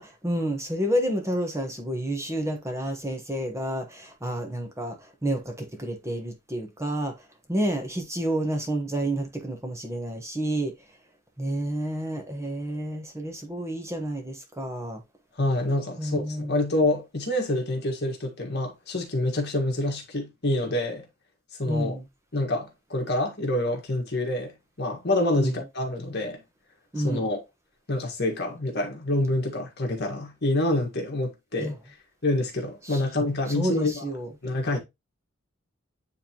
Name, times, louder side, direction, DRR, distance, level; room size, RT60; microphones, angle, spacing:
voice 1, 0.0-7.1 7.5-10.7 11.4-15.0 16.0-16.6 21.7-22.1 25.4-25.6 26.9-27.3 31.6-31.7 32.8-33.0 33.5-34.3, right 1 dB, 15° right, 1.1 m, -30 dB
voice 2, 15.4-21.0 21.6-22.0 22.3-26.4 27.0-27.4 27.9-31.8 32.2-34.0 34.4-34.8, left 1 dB, 55° left, 1.7 m, -27 dB
9.3 x 3.5 x 3.0 m
head